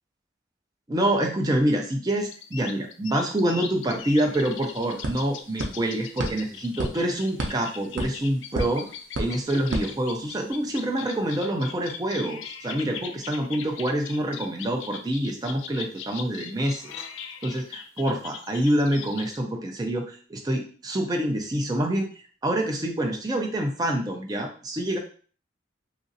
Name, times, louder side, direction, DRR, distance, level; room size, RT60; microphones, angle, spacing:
voice 1, 0.9-8.9 9.2-16.9 17.4-22.1 22.4-25.0, right 1 dB, 20° right, 2 dB, 0.4 m, -26 dB
sound 1, 2.2-19.4, left 7 dB, 80° left, 0.3 m, -40 dB
sound 2, 3.9-4.0 4.2-10.7, right 1 dB, 75° right, 0.6 m, -34 dB
2.9 x 2.5 x 2.6 m, 0.41 s
head